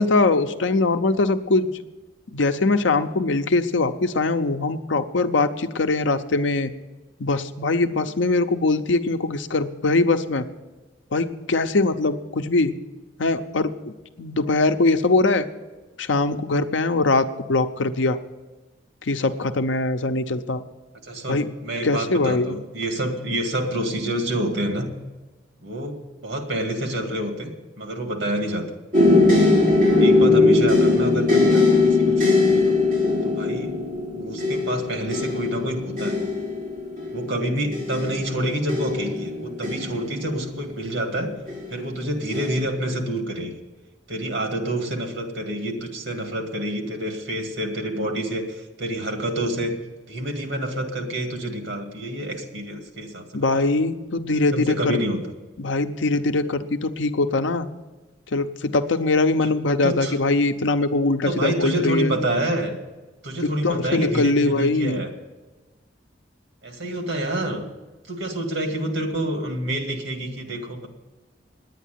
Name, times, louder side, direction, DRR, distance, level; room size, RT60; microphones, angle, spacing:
voice 1, 0.0-1.7 2.3-6.7 7.2-10.4 11.1-12.7 13.2-13.7 14.2-15.5 16.0-18.2 19.0-20.6 21.3-21.4 21.8-22.6 53.3-55.0 55.6-57.7 58.3-62.1 63.4-65.0, left 3 dB, 85° left, 8 dB, 0.7 m, -22 dB
voice 2, 21.0-24.9 25.6-26.0 26.2-28.7 30.0-32.8 33.2-33.7 34.1-36.2 37.1-41.3 41.7-43.6 44.1-49.8 50.1-53.3 53.5-53.6 54.5-55.2 59.8-60.1 61.3-62.8 63.2-65.1 66.6-67.6 68.1-70.9, right 1 dB, 80° right, 4 dB, 2.2 m, -28 dB
sound 1, 28.9-40.8 41.5-41.9 42.3-42.6, left 3 dB, 45° right, 5.2 m, -20 dB
10.0 x 9.3 x 9.2 m, 1.2 s
head